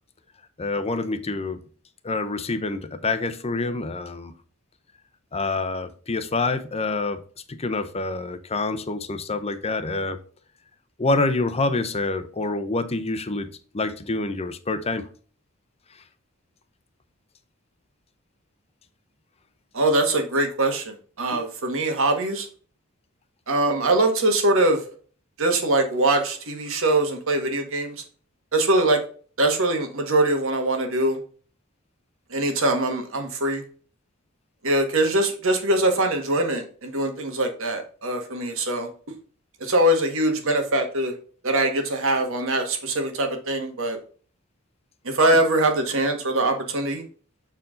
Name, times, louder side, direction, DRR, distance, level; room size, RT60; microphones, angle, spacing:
voice 1, 0.6-1.6 2.0-4.3 5.3-7.2 7.5-10.2 11.0-13.5 13.7-15.1, left 3 dB, 30° left, 0.7 m, -26 dB
voice 2, 19.7-22.5 23.5-24.8 25.4-27.9 28.5-29.0 29.4-31.2 32.3-33.6 34.6-38.9 39.6-41.1 41.4-44.0 45.0-47.0, right 1 dB, 65° right, 1.6 m, -22 dB
7.1 x 4.6 x 3.8 m
head